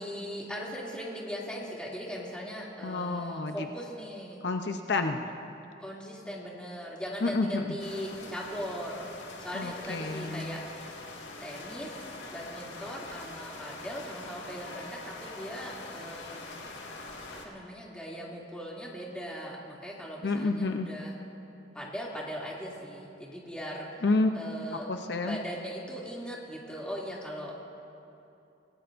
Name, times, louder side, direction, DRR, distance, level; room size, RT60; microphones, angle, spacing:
voice 1, 0.0-4.5 5.8-9.1 9.4-10.9 11.4-12.0 12.3-16.6 17.3-21.1 21.7-24.0 24.3-24.9 25.3-27.6, equal, 5° left, -5 dB, 2.7 m, -39 dB
voice 2, 2.8-3.7 4.4-5.3 7.2-7.6 9.5-10.6 20.2-20.9 24.0-24.3 24.9-25.4, left 3 dB, 65° left, 5 dB, 0.7 m, -29 dB
sound 1, 7.8-17.5, left 3 dB, 85° left, 1.9 m, -44 dB
26.5 x 17.5 x 2.6 m, 2.8 s
head